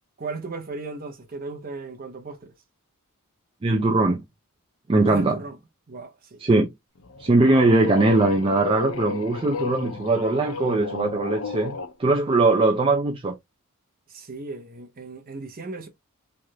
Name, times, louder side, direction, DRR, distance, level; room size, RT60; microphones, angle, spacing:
voice 1, 0.2-2.5 5.1-5.6 5.9-6.4 14.1-15.9, right 3 dB, 40° right, 0.8 m, -36 dB
voice 2, 3.6-4.2 4.9-5.4 6.4-6.7 7.2-13.4, right 2 dB, 25° right, 0.4 m, -21 dB
sound 1, 7.0-11.9, left 4 dB, 65° left, 0.6 m, -32 dB
3.2 x 2.4 x 2.7 m
head